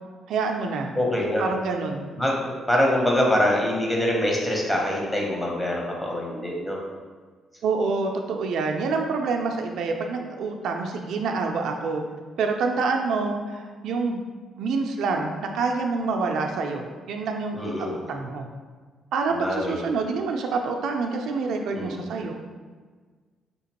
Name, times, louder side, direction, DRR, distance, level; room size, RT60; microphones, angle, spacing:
voice 1, 0.3-0.9 1.4-2.1 7.6-12.0 12.4-14.2 14.6-18.5 19.1-22.3, right 4 dB, 75° right, 3 dB, 0.3 m, -27 dB
voice 2, 1.0-1.5 2.2-6.8 17.5-18.0 19.3-19.8 21.7-22.0, left 1 dB, 10° left, -2 dB, 0.8 m, -24 dB
3.6 x 2.9 x 2.9 m, 1.5 s
cardioid pair, 90°, 0 cm